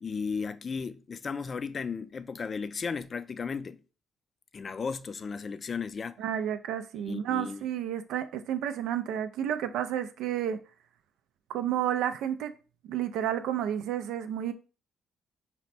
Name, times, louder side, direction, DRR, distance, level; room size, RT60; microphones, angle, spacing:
voice 1, 0.0-3.8 4.5-6.2 7.1-7.6, left 5 dB, 40° left, 0.3 m, -35 dB
voice 2, 6.2-10.6 11.5-12.5 12.9-14.5, right 10 dB, 90° right, 0.3 m, -31 dB
4.1 x 2.2 x 4.0 m
cardioid pair, 90°, 0 cm